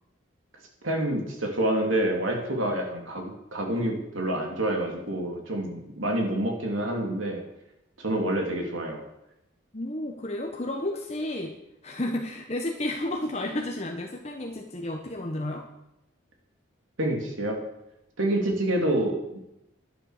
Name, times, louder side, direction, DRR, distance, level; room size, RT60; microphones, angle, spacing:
voice 1, 0.8-7.4 8.0-9.0 17.0-17.6 18.2-19.5, right 1 dB, 85° right, 2 dB, 3.3 m, -27 dB
voice 2, 9.7-11.5 11.8-15.7, left 1 dB, 35° left, 1 dB, 1.3 m, -32 dB
11.0 x 10.5 x 6.7 m, 0.87 s
head